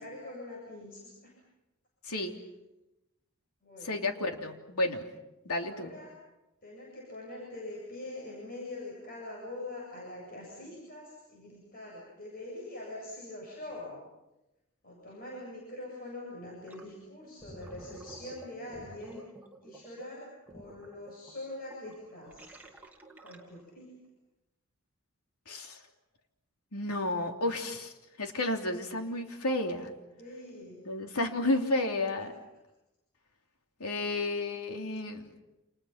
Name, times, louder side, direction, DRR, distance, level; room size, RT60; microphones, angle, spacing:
voice 1, 0.0-1.4 3.6-4.1 5.6-6.1 6.6-14.0 14.8-19.3 19.6-22.5 23.2-23.9 30.2-30.9 32.2-32.3, left 2 dB, 40° left, -3 dB, 8.0 m, -44 dB
voice 2, 2.1-2.4 3.8-5.1 5.4-5.9 25.5-25.8 26.7-27.9 28.2-29.9 30.8-32.3 33.8-35.2, left 2 dB, 90° left, 3 dB, 3.2 m, -31 dB
Gurgling, 16.7-16.9 17.3-23.7, right 2 dB, 10° right, 2.5 m, -51 dB
29.0 x 29.0 x 5.9 m, 0.96 s
head